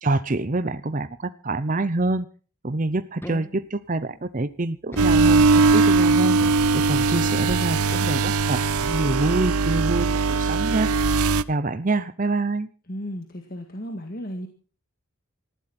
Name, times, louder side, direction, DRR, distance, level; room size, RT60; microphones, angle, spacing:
voice 1, 0.0-2.3 2.6-6.4 6.7-10.9 11.5-12.7, right 2 dB, 35° right, 12 dB, 0.7 m, -26 dB
sound 1, 3.2-3.9 4.9-5.8 6.4-7.2 7.9-8.9, equal, 10° left, 1.9 m, -41 dB
sound 2, 5.0-11.4, right 4 dB, 85° right, 0.7 m, -20 dB
voice 2, 12.9-14.5, equal, 40° left, 4 dB, 1.9 m, -34 dB
19.5 x 15.0 x 4.3 m, 0.39 s
head